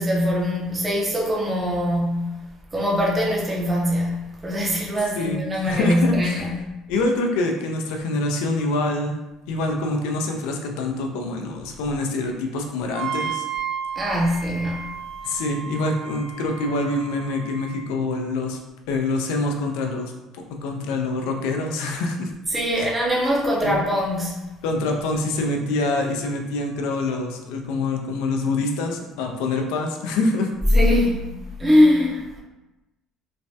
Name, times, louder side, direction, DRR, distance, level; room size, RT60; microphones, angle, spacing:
voice 1, 0.0-2.4 2.7-6.5 14.0-14.8 22.5-24.4 30.7-31.2 31.6-32.4, left 1 dB, 10° right, -4 dB, 0.5 m, -22 dB
voice 2, 5.2-6.4 6.9-9.2 9.5-13.5 15.2-18.6 18.9-22.3 22.8-22.9 23.6-23.8 24.6-30.5, left 2 dB, 85° left, 3 dB, 0.4 m, -25 dB
Wind instrument woodwind instrument, 12.9-17.9, right 7 dB, 85° right, 1.2 m, -33 dB
3.2 x 2.1 x 2.7 m, 1.0 s
cardioid pair, 175°, 0 cm